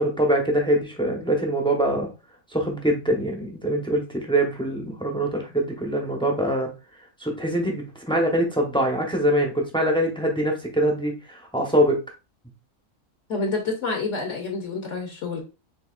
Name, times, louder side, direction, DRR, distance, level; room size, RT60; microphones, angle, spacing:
voice 1, 0.0-2.1 2.5-6.7 7.2-11.9, right 1 dB, 5° left, 1 dB, 0.7 m, -23 dB
voice 2, 13.3-15.4, left 3 dB, 60° left, 2 dB, 1.1 m, -28 dB
7.0 x 2.8 x 2.4 m, 0.30 s
omnidirectional pair, 1.6 m